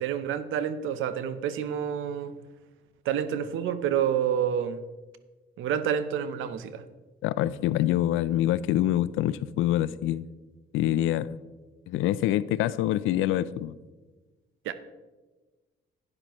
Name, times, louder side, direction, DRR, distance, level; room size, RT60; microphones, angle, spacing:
voice 1, 0.0-2.4 3.0-4.8 5.6-6.8 14.6-14.7, right 9 dB, 80° right, 12 dB, 0.7 m, -28 dB
voice 2, 7.2-10.2 10.7-11.4 11.9-13.7, left 13 dB, 90° left, 18 dB, 0.4 m, -25 dB
12.0 x 10.0 x 3.0 m, 1.2 s
cardioid pair, 90°, 20 cm